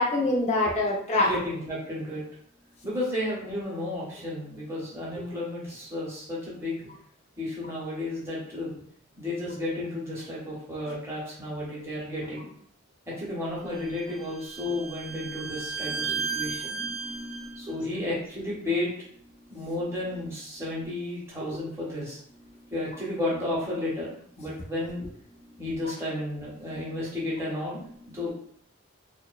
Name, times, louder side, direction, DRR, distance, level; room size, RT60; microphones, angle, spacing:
voice 1, 0.0-1.3 15.9-17.7, left 2 dB, 30° left, -2 dB, 0.5 m, -27 dB
voice 2, 1.2-2.2 2.8-6.8 7.4-8.8 9.2-12.5 13.1-16.8 17.6-19.0 19.5-22.2 22.7-24.1 24.4-25.0 25.6-28.3, left 1 dB, 15° right, -6 dB, 0.7 m, -32 dB
Bowed string instrument, 13.7-17.5, right 5 dB, 30° right, 0.3 m, -34 dB
2.5 x 2.1 x 2.3 m, 0.63 s
head